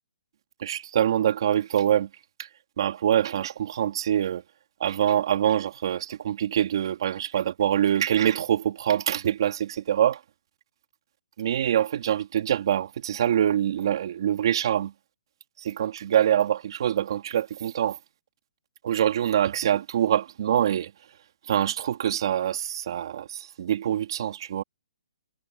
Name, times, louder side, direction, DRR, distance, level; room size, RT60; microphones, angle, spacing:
voice 1, 0.6-2.1 2.4-2.5 2.8-4.4 4.8-10.2 11.4-14.9 15.6-18.0 18.8-20.9 21.5-24.6, right 10 dB, 45° right, 2.6 m, -25 dB
hypercardioid pair, 170°, 4 cm